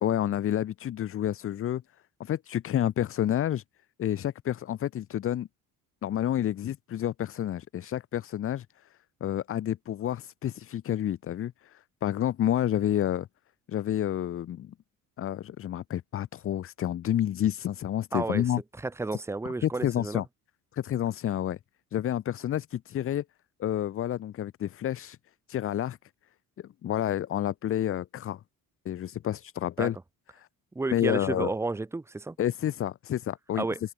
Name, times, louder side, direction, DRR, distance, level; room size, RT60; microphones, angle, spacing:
voice 1, 0.0-1.8 2.2-3.6 4.0-5.5 6.0-8.9 9.2-13.3 13.7-14.7 15.2-18.6 19.6-20.2 20.7-21.6 21.9-23.2 23.6-25.2 25.5-26.0 26.6-28.4 28.8-30.0 30.4-30.5 30.9-31.5 32.4-33.7, left 11 dB, 40° left, 0.7 m, -29 dB
voice 2, 18.1-18.4 18.8-20.2 29.8-29.9 30.7-32.4 33.6-33.8, right 3 dB, 5° right, 0.7 m, -31 dB
open air
cardioid pair, 160°, 36 cm